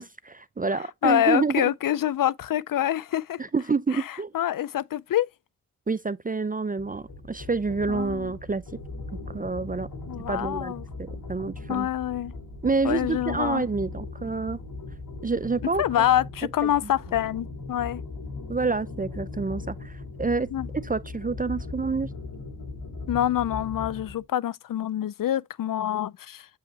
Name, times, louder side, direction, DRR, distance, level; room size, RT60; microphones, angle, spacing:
voice 1, 0.0-1.7 3.4-4.3 5.9-8.6 9.3-9.9 10.3-10.7 11.0-11.9 12.6-14.6 15.2-16.1 18.5-20.5 20.8-22.1, right 4 dB, 25° right, 0.5 m, -28 dB
voice 2, 1.0-3.4 3.9-5.3 7.9-8.3 10.1-10.8 11.7-12.3 12.8-13.7 15.8-18.0 20.5-20.7 23.1-26.5, left 11 dB, 70° left, 0.5 m, -26 dB
sound 1, 6.8-24.2, left 3 dB, 85° left, 2.6 m, -39 dB
8.3 x 5.6 x 2.9 m
cardioid pair, 45°, 35 cm